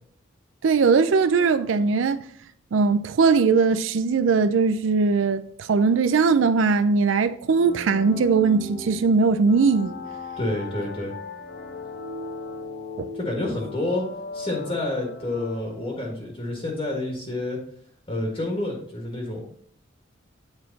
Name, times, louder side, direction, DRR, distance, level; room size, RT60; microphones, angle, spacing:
voice 1, 0.6-2.2 2.7-9.9 13.0-13.1, right 4 dB, 85° right, 0.4 m, -20 dB
sound 1, 7.5-16.1, left 3 dB, 80° left, 2.4 m, -38 dB
voice 2, 10.4-11.1 13.1-14.1 14.3-17.6 18.1-19.4, left 2 dB, 30° left, 1.6 m, -28 dB
8.6 x 4.5 x 4.0 m
head